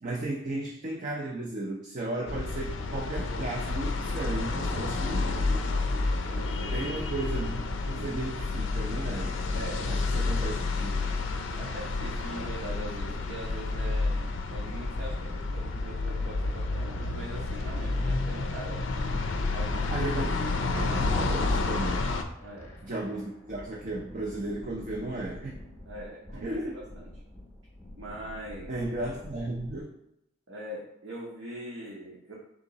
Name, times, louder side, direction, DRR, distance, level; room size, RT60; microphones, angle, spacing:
voice 1, 0.0-5.7 6.7-9.4 9.9-11.1 19.9-20.4 20.7-22.1 22.8-25.5 26.4-26.8 28.7-29.9, right 2 dB, 40° right, -1 dB, 0.5 m, -35 dB
sound 1, 2.3-22.2, left 3 dB, 65° left, 0.4 m, -30 dB
voice 2, 6.2-7.0 7.9-8.1 9.5-9.9 11.5-18.8 19.5-20.0 20.7-21.4 22.4-22.7 25.9-27.1 28.0-28.7 30.5-32.3, right 1 dB, 65° right, -5 dB, 0.8 m, -42 dB
sound 2, 16.0-29.8, left 1 dB, 15° left, 0.8 m, -48 dB
3.7 x 2.8 x 3.9 m, 0.82 s
head